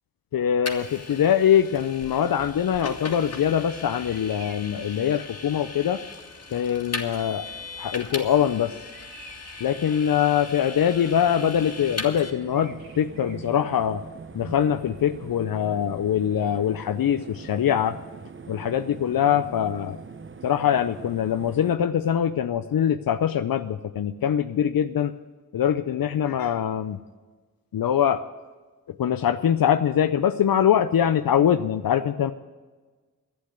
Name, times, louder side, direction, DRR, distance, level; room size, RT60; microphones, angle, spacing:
voice 1, 0.3-6.0 6.5-7.5 7.8-8.8 9.6-14.0 14.3-18.0 18.5-20.0 20.4-25.1 25.5-27.0 27.7-28.2 28.9-32.3, left 9 dB, 85° left, 10 dB, 0.6 m, -23 dB
Vehicle, 0.7-12.3, left 4 dB, 45° left, 1.8 m, -38 dB
Bird vocalization bird call bird song, 0.9-16.0, right 2 dB, 85° right, 3.3 m, -52 dB
sound 1, 11.2-21.8, right 4 dB, 35° right, 0.7 m, -42 dB
12.0 x 9.7 x 8.1 m, 1.3 s
wide cardioid pair, 80°, 34 cm